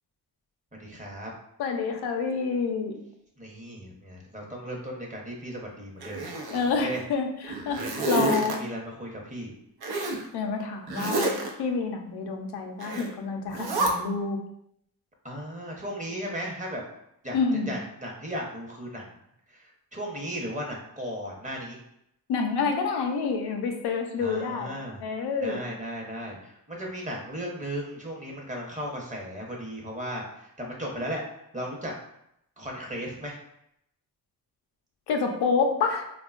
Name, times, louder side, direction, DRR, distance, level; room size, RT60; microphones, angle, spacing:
voice 1, 0.8-1.3 3.4-6.3 6.8-7.0 8.3-9.5 15.2-16.8 17.2-17.4 17.7-19.0 19.5-21.8 24.2-25.0 25.4-31.2 31.5-31.9 32.6-33.4, equal, 20° right, -1 dB, 0.8 m, -36 dB
voice 2, 1.6-3.0 6.5-8.6 10.3-11.3 11.6-14.4 17.3-17.8 22.3-24.7 25.0-25.6 35.1-36.0, left 5 dB, 90° left, 3 dB, 0.5 m, -28 dB
Zipper (clothing), 6.0-7.0 7.4-8.6 9.8-10.2 10.9-11.5 12.8-13.1 13.5-13.9, right 2 dB, 75° right, 0.6 m, -29 dB
3.5 x 2.2 x 2.4 m, 0.77 s
cardioid pair, 60°, 38 cm